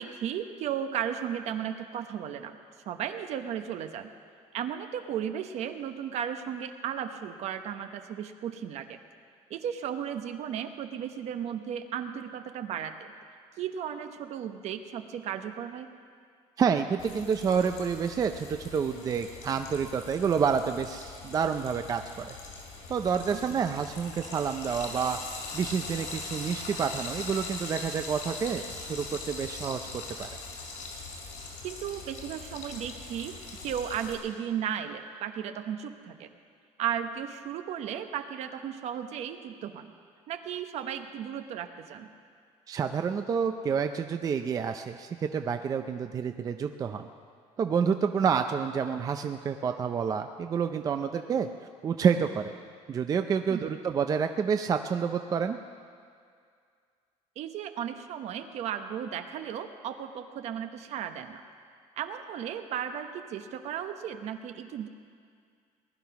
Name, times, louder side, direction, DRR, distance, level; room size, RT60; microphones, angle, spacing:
voice 1, 0.0-2.6 2.9-4.1 4.5-9.0 9.5-13.1 13.6-15.9 23.3-23.6 31.6-36.3 36.8-39.9 40.3-42.1 53.5-53.8 57.4-61.4 62.0-64.9, right 9 dB, 60° right, 8 dB, 1.0 m, -35 dB
voice 2, 16.6-22.3 22.9-25.2 25.5-30.3 42.7-47.1 47.6-51.5 51.8-52.5 52.9-55.6, right 6 dB, 30° right, 7 dB, 0.5 m, -28 dB
Frying (food), 17.0-34.1, left 3 dB, 80° left, 5.0 m, -41 dB
19.5 x 11.5 x 5.9 m, 2.2 s
cardioid pair, 155°, 12 cm